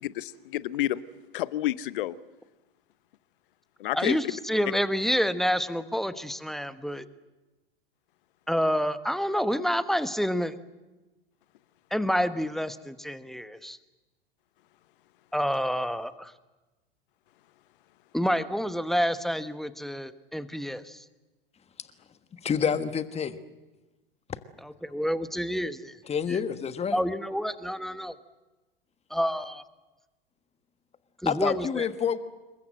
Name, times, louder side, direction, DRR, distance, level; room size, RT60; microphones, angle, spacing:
voice 1, 0.0-1.0 1.3-2.2 3.8-4.2, left 14 dB, 60° left, 18 dB, 0.8 m, -29 dB
voice 2, 3.9-7.1 8.5-10.5 11.9-13.8 15.3-16.3 18.1-21.0 24.6-26.0 26.3-26.4 26.9-28.2 29.1-29.6 31.2-31.8, equal, ahead, 13 dB, 1.1 m, -28 dB
voice 3, 22.4-23.4 26.1-27.0 31.2-32.2, left 7 dB, 20° left, 11 dB, 1.5 m, -28 dB
27.5 x 22.5 x 7.7 m, 1.1 s
figure-of-eight pair, 85°, 29 cm